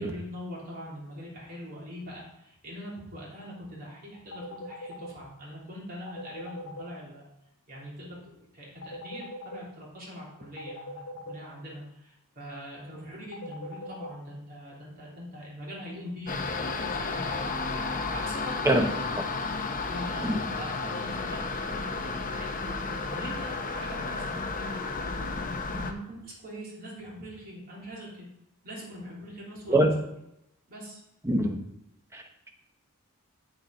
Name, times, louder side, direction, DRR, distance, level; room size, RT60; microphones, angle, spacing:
voice 1, 0.0-7.2 7.7-11.0 11.2-17.7 18.1-19.2 19.9-25.3 25.7-28.3 28.6-29.9 30.7-31.0, equal, 45° right, -5 dB, 3.2 m, -42 dB
sound 1, 4.3-5.1 6.1-6.8 8.8-9.6 10.6-11.3 13.3-14.1, left 3 dB, 75° left, 2.1 m, -40 dB
sound 2, 16.3-25.9, left 3 dB, 35° left, 0.7 m, -32 dB
voice 2, 31.2-31.6 32.1-32.5, right 1 dB, 10° right, 3 dB, 0.9 m, -24 dB
7.9 x 6.9 x 4.0 m, 0.83 s
head